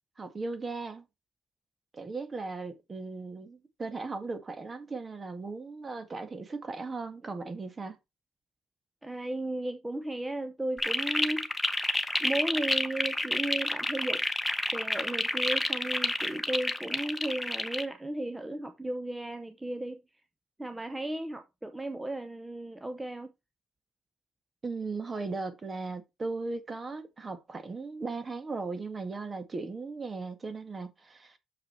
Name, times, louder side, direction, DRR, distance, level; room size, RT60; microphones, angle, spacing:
voice 1, 0.2-1.0 1.9-8.0 24.6-31.4, right 3 dB, 30° right, 1.7 m, -37 dB
voice 2, 9.0-11.7 12.2-14.2 14.7-20.0 20.6-23.3, right 1 dB, 10° right, 0.8 m, -35 dB
sound 1, 10.8-17.8, left 1 dB, 5° left, 1.1 m, -29 dB
6.8 x 5.9 x 4.4 m
cardioid pair, 90°, 0 cm